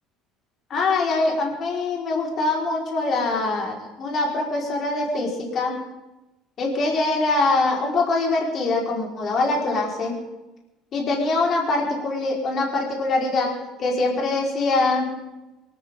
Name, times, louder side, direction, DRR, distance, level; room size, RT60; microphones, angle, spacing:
voice 1, 0.7-5.8 6.6-10.2 10.9-13.5 13.8-15.1, left 3 dB, 50° left, -2 dB, 4.5 m, -23 dB
24.5 x 13.0 x 3.8 m, 1.0 s
hypercardioid pair, 65°, 0 cm